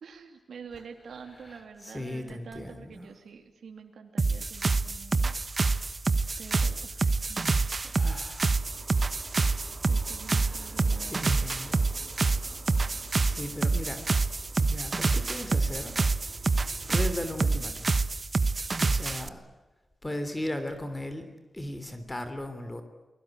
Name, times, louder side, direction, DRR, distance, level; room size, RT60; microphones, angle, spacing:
voice 1, 0.0-5.4 6.4-8.1 9.9-11.4, right 6 dB, 85° right, 4 dB, 2.8 m, -47 dB
voice 2, 1.4-3.1 7.9-8.6 10.4-12.0 13.2-14.0 14.6-16.4 16.9-17.9 18.8-19.4 20.0-21.3 21.5-22.8, left 1 dB, 20° left, 9 dB, 3.2 m, -37 dB
sound 1, 4.2-19.3, right 3 dB, 40° right, 1.2 m, -27 dB
sound 2, 8.5-17.6, right 3 dB, 65° right, 6.3 m, -49 dB
29.5 x 21.0 x 9.1 m, 1.2 s
wide cardioid pair, 85°, 0 cm